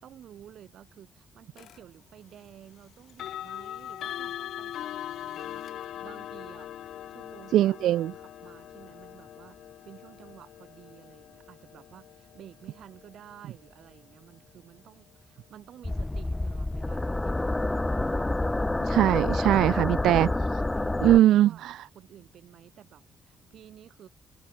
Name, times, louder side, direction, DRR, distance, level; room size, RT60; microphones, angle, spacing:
voice 1, 0.0-6.7 7.1-18.5 20.7-24.1, right 10 dB, 55° right, 4.4 m, -52 dB
sound 1, 1.6-1.8 3.1-14.0, left 11 dB, 65° left, 1.6 m, -41 dB
voice 2, 7.5-8.1 18.8-20.3 21.0-21.7, right 13 dB, 85° right, 0.4 m, -21 dB
sound 2, 15.8-21.2, left 2 dB, 10° left, 0.6 m, -28 dB
cardioid pair, 180°, 0 cm